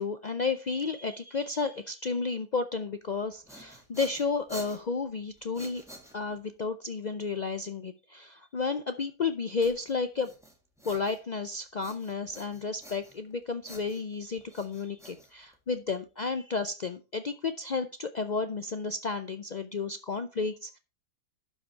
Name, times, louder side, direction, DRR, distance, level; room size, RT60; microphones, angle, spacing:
voice 1, 0.0-5.8 6.1-10.3 10.9-20.8, left 4 dB, 70° left, 9 dB, 0.4 m, -32 dB
sound 1, 3.2-6.6 9.6-11.4 11.8-13.3 13.6-15.9, equal, ahead, 1.9 m, -49 dB
11.5 x 5.0 x 4.5 m, 0.31 s
omnidirectional pair, 1.6 m